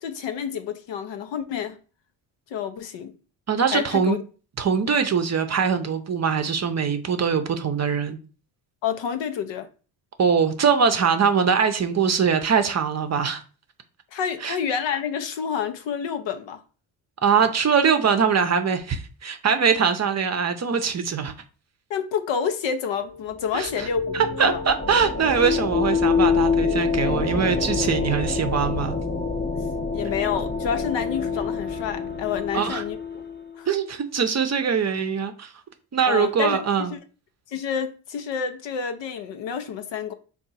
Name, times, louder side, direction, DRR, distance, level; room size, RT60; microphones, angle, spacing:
voice 1, 0.0-1.8 2.5-3.1 3.7-4.2 8.8-9.7 14.1-16.6 21.9-24.6 29.9-33.0 33.6-33.7 36.1-36.6 36.9-37.0 37.5-40.1, left 7 dB, 65° left, 0.7 m, -29 dB
voice 2, 3.5-4.2 4.6-8.2 10.2-13.4 14.4-14.6 17.2-21.3 23.5-23.9 24.1-29.0 32.5-32.8 33.7-35.5 35.9-36.9, right 6 dB, 35° right, 0.6 m, -22 dB
sound 1, 23.0-33.6, left 5 dB, 20° left, 0.7 m, -26 dB
3.6 x 2.4 x 4.0 m
supercardioid pair, 60°, 48 cm